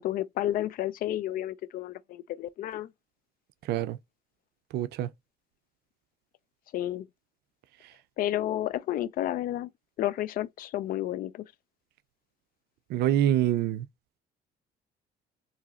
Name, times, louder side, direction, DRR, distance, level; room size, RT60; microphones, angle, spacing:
voice 1, 0.0-2.9 6.7-7.1 8.2-9.7 10.0-11.4, left 13 dB, 60° left, 0.4 m, -31 dB
voice 2, 3.6-4.0 4.7-5.1 12.9-13.9, right 12 dB, 75° right, 0.4 m, -26 dB
4.0 x 2.8 x 2.3 m
cardioid pair, 110°, 17 cm